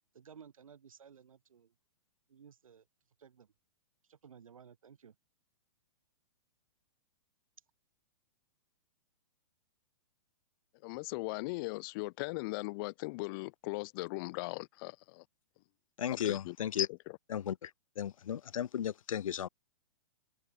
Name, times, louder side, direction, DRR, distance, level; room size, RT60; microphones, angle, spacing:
voice 1, 0.1-1.7 2.3-2.8 3.2-3.5 4.1-5.2, right 7 dB, 80° right, 6.3 m, -56 dB
voice 2, 10.8-15.2 16.2-16.6, left 26 dB, 40° left, 0.9 m, -39 dB
voice 3, 16.0-16.9 17.3-17.7 18.0-19.5, left 9 dB, 75° left, 1.0 m, -34 dB
hypercardioid pair, 130°, 17 cm